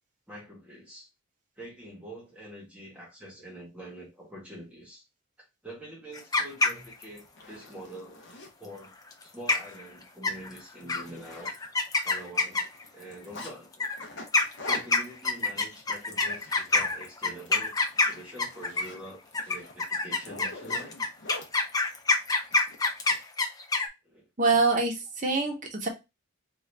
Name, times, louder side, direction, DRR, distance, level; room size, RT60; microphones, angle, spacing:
voice 1, 0.3-1.1 1.6-5.0 5.4-8.2 8.6-8.9 9.2-11.5 12.0-12.7 12.9-13.9 14.6-21.0 24.0-24.3, right 1 dB, 5° right, 1.2 m, -45 dB
sound 1, 6.1-7.2 9.1-9.2 9.5-9.8 10.2-10.6 10.9-11.0 11.5-12.9 13.7-19.0 19.3-23.9, left 3 dB, 15° left, 0.4 m, -26 dB
Zipper (clothing), 6.7-6.8 7.2-8.5 9.1-9.3 9.6-9.8 10.1-10.2 10.6-11.9 12.1-13.5 14.0-16.9 17.3-17.5 17.9-21.5 22.5-23.2, left 2 dB, 55° left, 0.8 m, -45 dB
voice 2, 24.4-25.9, right 3 dB, 35° right, 0.9 m, -25 dB
3.7 x 2.5 x 3.2 m
head